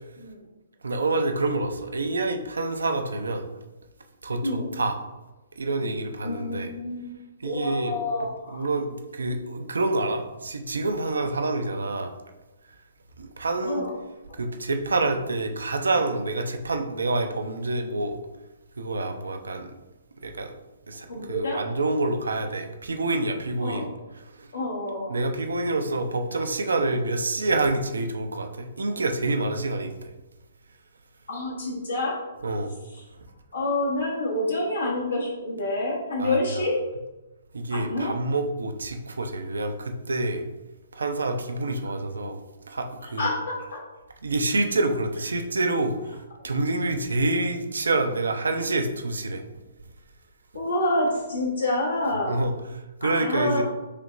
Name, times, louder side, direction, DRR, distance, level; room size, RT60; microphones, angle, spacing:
voice 1, 0.8-3.4 4.2-5.0 5.6-6.7 7.4-8.0 8.5-12.1 13.2-13.8 14.3-18.2 18.8-19.7 20.2-20.5 20.9-23.8 24.2-24.5 25.1-29.9 32.4-32.7 36.2-36.7 37.5-40.4 40.9-42.4 42.7-43.3 44.2-49.4 52.3-52.5 53.0-53.6, right 2 dB, 70° right, 6 dB, 0.6 m, -27 dB
voice 2, 4.4-4.8 6.2-8.7 13.6-13.9 21.1-21.6 23.6-23.9 24.5-25.2 31.3-32.2 32.9-33.0 33.5-36.8 37.7-38.1 41.8-42.0 43.0-43.8 50.5-52.4 53.0-53.6, left 1 dB, 70° left, -5 dB, 1.3 m, -28 dB
6.5 x 2.9 x 2.5 m, 1.1 s
figure-of-eight pair, 125°, 0 cm